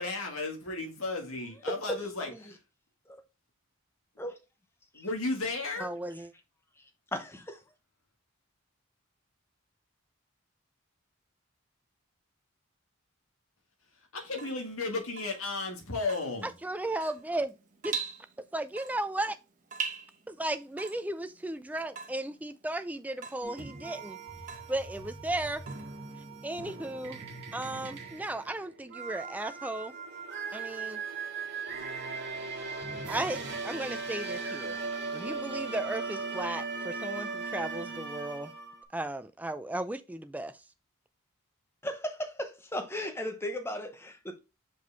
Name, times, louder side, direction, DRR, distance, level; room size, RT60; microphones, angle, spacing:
voice 1, 0.0-2.3 4.9-5.9 14.1-16.5, left 3 dB, 75° left, 1.8 m, -34 dB
voice 2, 5.8-6.3 16.4-17.5 17.8-18.0 18.5-19.4 20.3-24.2 24.7-25.6 26.4-27.2 27.5-29.9 30.5-31.0 33.1-34.8 35.1-38.5 38.9-40.6, right 1 dB, 5° right, 0.4 m, -35 dB
voice 3, 7.1-7.6 41.8-44.4, equal, 10° left, 0.8 m, -36 dB
Water tap faucet / Drip, 14.2-26.4, right 6 dB, 35° right, 1.0 m, -43 dB
sound 1, 23.4-38.8, right 4 dB, 50° right, 1.8 m, -38 dB
6.1 x 5.0 x 3.4 m
head